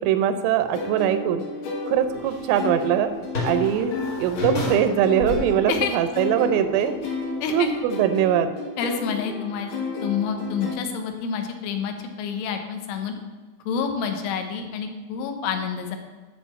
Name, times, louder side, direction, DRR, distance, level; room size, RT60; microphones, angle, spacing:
voice 1, 0.0-1.5 1.9-3.1 3.4-6.9 7.5-8.5, right 9 dB, 90° right, 9 dB, 3.2 m, -22 dB
sound 1, 0.7-10.7, left 4 dB, 65° left, 3.0 m, -32 dB
sound 2, 2.0-6.6 6.9-7.0 7.4-7.5, left 2 dB, 40° left, 1.8 m, -32 dB
voice 2, 7.4-7.8 8.8-9.7 10.0-13.1 13.7-16.0, left 6 dB, 80° left, 5 dB, 3.3 m, -28 dB
9.8 x 4.1 x 7.1 m, 1.3 s
omnidirectional pair, 5.5 m